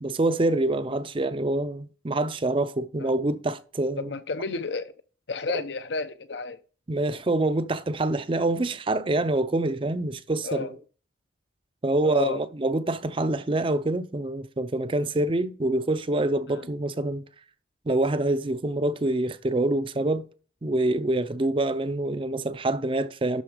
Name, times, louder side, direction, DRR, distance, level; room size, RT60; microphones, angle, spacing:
voice 1, 0.0-4.1 6.9-10.7 11.8-17.2 17.9-20.2 20.6-23.4, right 2 dB, 25° right, 0.5 m, -26 dB
voice 2, 4.0-4.9 5.3-6.6 10.4-10.7 12.0-12.4 15.1-15.3 16.5-16.7, left 4 dB, 65° left, 0.7 m, -32 dB
11.5 x 4.3 x 5.0 m
head